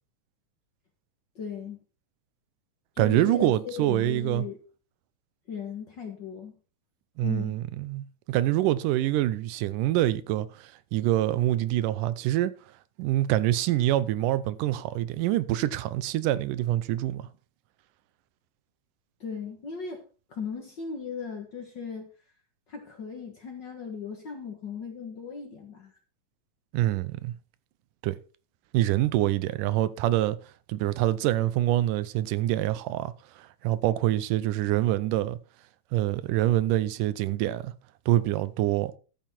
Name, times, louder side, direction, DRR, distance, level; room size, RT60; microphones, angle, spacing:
voice 1, 1.3-1.8 2.9-4.6 5.5-6.5 7.2-7.6 19.2-20.0 20.3-22.1 22.7-25.9, left 5 dB, 45° left, 1.6 m, -37 dB
voice 2, 3.0-4.5 7.2-12.6 13.0-17.3 26.7-27.3 28.0-28.2 28.7-30.4 30.7-35.4 35.9-37.7 38.1-38.9, right 14 dB, 85° right, 2.3 m, -26 dB
13.0 x 7.2 x 4.3 m
omnidirectional pair, 3.7 m